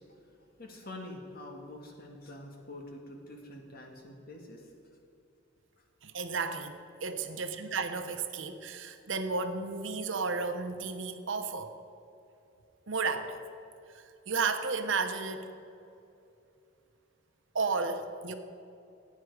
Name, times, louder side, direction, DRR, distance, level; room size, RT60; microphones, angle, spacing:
voice 1, 0.6-4.7, left 1 dB, 50° left, 1 dB, 1.9 m, -46 dB
voice 2, 6.0-11.7 12.9-13.4 13.9-15.5 17.5-18.3, right 4 dB, 70° right, 7 dB, 0.9 m, -33 dB
15.5 x 9.4 x 4.9 m, 2.7 s
head